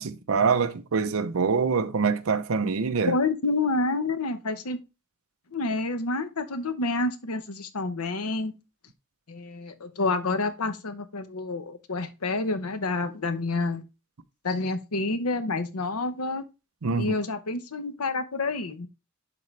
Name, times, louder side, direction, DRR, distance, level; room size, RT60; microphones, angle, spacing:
voice 1, 0.0-3.2 16.8-17.1, right 5 dB, 70° right, 0.7 m, -25 dB
voice 2, 3.1-4.8 5.5-8.5 9.3-13.9 14.4-16.4 17.0-18.9, left 3 dB, 90° left, 0.9 m, -28 dB
11.0 x 3.8 x 3.2 m
head